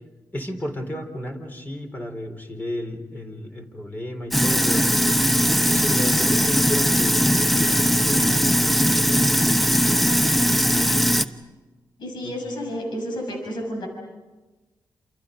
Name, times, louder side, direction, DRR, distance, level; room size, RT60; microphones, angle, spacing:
voice 1, 0.3-4.9 5.7-9.3 12.2-12.3, equal, 25° left, 3 dB, 4.1 m, -33 dB
Sink (filling or washing), 4.3-11.2, equal, ahead, 1.0 m, -19 dB
voice 2, 12.0-13.9, equal, 85° left, 1 dB, 6.3 m, -31 dB
29.5 x 28.5 x 5.2 m, 1.2 s
cardioid pair, 90°, 8 cm